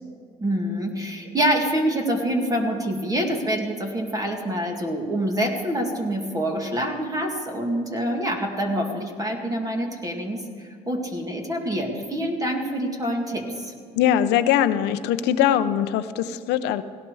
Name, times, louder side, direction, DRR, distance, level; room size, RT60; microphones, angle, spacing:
voice 1, 0.4-13.7, right 1 dB, 20° right, 2 dB, 2.2 m, -26 dB
voice 2, 14.0-16.8, left 10 dB, 90° left, 11 dB, 0.7 m, -21 dB
17.5 x 17.0 x 4.8 m, 2.2 s
cardioid pair, 110°, 17 cm